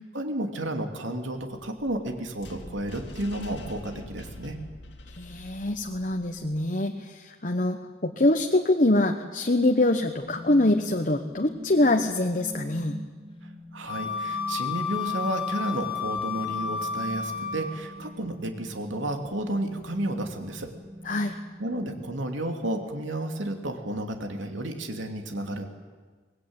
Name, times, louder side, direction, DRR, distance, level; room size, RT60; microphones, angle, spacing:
voice 1, 0.1-4.6 13.7-20.7 21.1-25.7, right 1 dB, 85° right, 4 dB, 2.9 m, -32 dB
sound 1, 1.6-6.7, left 1 dB, 70° left, 2.4 m, -45 dB
voice 2, 5.1-13.0 21.0-21.3, left 2 dB, 45° left, 4 dB, 1.1 m, -24 dB
sound 2, 10.2-22.2, equal, 30° right, 3.8 m, -44 dB
Wind instrument woodwind instrument, 13.9-17.9, left 6 dB, 25° left, 1.7 m, -31 dB
24.0 x 20.5 x 9.0 m, 1.5 s
head